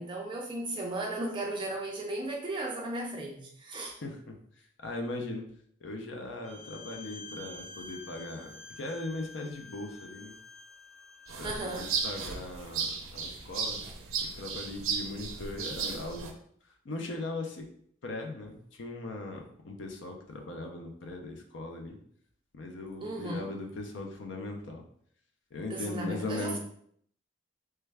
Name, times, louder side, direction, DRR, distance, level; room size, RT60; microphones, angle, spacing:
voice 1, 0.0-3.9 11.4-11.9 23.0-23.5 25.7-26.6, right 2 dB, 25° right, -1 dB, 0.4 m, -35 dB
voice 2, 3.9-4.4 4.8-5.5 5.8-10.3 11.4-13.8 14.4-16.3 16.8-17.7 18.0-22.0 22.5-24.8 25.5-26.6, left 2 dB, 65° left, 3 dB, 0.5 m, -39 dB
Bowed string instrument, 6.4-12.2, left 3 dB, 85° left, 0.9 m, -49 dB
sound 1, 11.3-16.3, right 5 dB, 90° right, 0.5 m, -35 dB
3.3 x 2.2 x 3.3 m, 0.64 s
head